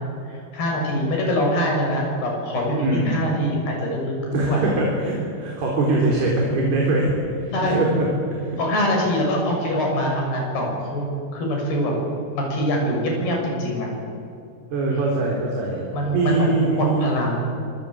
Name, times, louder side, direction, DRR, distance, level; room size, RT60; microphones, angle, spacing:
voice 1, 0.3-4.7 7.5-7.8 8.6-11.9 12.3-13.9 14.9-15.0 15.9-17.4, equal, 80° left, 0 dB, 8.6 m, -24 dB
voice 2, 2.8-3.2 4.3-8.6 14.7-15.8 16.1-17.1, right 2 dB, 80° right, -2 dB, 6.1 m, -22 dB
26.5 x 25.0 x 8.8 m, 2.5 s
omnidirectional pair, 4.5 m